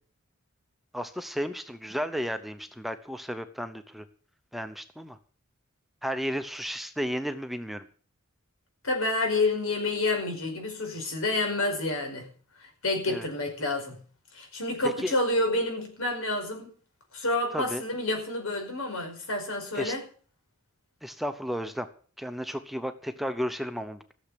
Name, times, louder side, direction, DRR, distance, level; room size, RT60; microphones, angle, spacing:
voice 1, 0.9-4.0 4.5-5.2 6.0-7.8 13.1-13.3 15.0-15.1 17.5-17.8 19.7-19.9 21.0-21.9 22.2-24.1, equal, ahead, 9 dB, 0.8 m, -33 dB
voice 2, 8.8-12.3 12.8-14.0 14.3-16.7 17.1-20.0, left 2 dB, 85° left, 4 dB, 5.2 m, -29 dB
15.0 x 7.3 x 8.3 m, 0.43 s
head